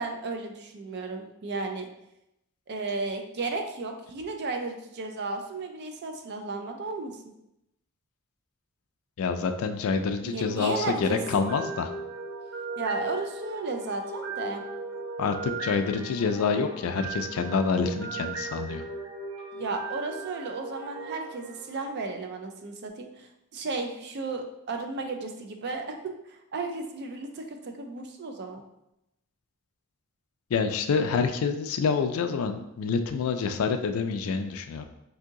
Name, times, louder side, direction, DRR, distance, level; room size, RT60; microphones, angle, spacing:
voice 1, 0.0-1.9 2.7-7.1 10.2-11.2 12.8-14.6 19.5-25.9 26.3-28.6, right 3 dB, 50° right, 4 dB, 0.4 m, -34 dB
voice 2, 9.2-11.9 15.2-18.8 30.5-34.8, left 5 dB, 70° left, 7 dB, 0.3 m, -27 dB
sound 1, 10.2-22.4, right 3 dB, 85° right, 1.4 m, -38 dB
2.8 x 2.7 x 3.6 m, 0.85 s
head